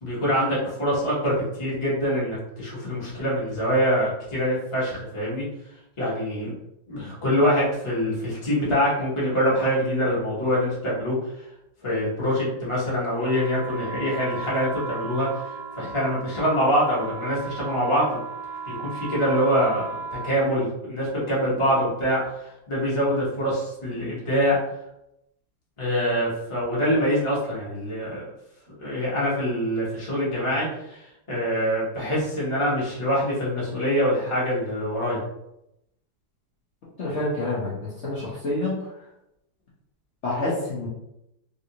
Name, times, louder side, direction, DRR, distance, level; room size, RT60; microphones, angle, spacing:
voice 1, 0.0-5.4 6.0-6.5 6.9-11.5 11.8-18.2 18.6-24.6 25.8-28.3 28.8-35.2, equal, 25° left, -7 dB, 0.7 m, -25 dB
sound 1, 13.1-20.4, right 4 dB, 90° right, 1.5 m, -36 dB
voice 2, 37.0-38.8 40.2-40.9, left 2 dB, 85° left, -7 dB, 0.6 m, -27 dB
3.4 x 2.6 x 2.8 m, 0.84 s
omnidirectional pair, 2.4 m